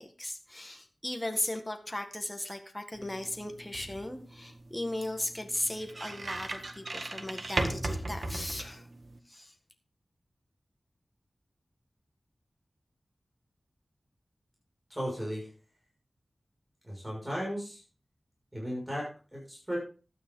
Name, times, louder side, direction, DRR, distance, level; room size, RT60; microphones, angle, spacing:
voice 1, 0.0-8.9 9.3-9.5, left 1 dB, 15° left, 5 dB, 1.7 m, -37 dB
sound 1, 2.9-9.2, right 2 dB, 60° right, 1.6 m, -37 dB
voice 2, 14.9-15.5 16.8-17.8 18.5-19.8, equal, 15° right, -3 dB, 5.9 m, -36 dB
12.0 x 9.4 x 3.8 m, 0.37 s
wide cardioid pair, 70°, 0 cm